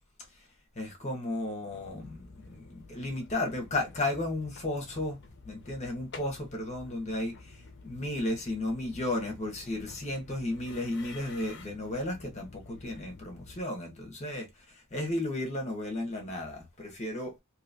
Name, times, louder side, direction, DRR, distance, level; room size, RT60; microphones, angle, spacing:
voice 1, 0.8-5.2 5.4-17.4, left 1 dB, 35° left, 1.1 m, -34 dB
sound 1, 1.7-13.6, left 3 dB, 55° left, 0.6 m, -51 dB
3.0 x 2.8 x 2.6 m
head